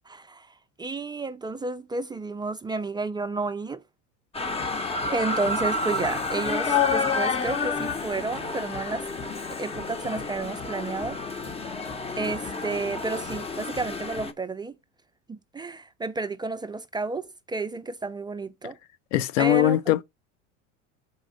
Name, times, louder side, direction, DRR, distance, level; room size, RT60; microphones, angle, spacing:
voice 1, 0.1-3.8 5.1-9.1 9.6-11.2 12.2-14.8 15.3-18.8 19.4-19.9, right 3 dB, 10° right, 0.4 m, -31 dB
sound 1, 4.3-14.3, left 4 dB, 15° left, 0.7 m, -29 dB
voice 2, 19.1-20.0, left 16 dB, 80° left, 0.7 m, -21 dB
6.2 x 4.2 x 3.7 m
supercardioid pair, 105°, 37 cm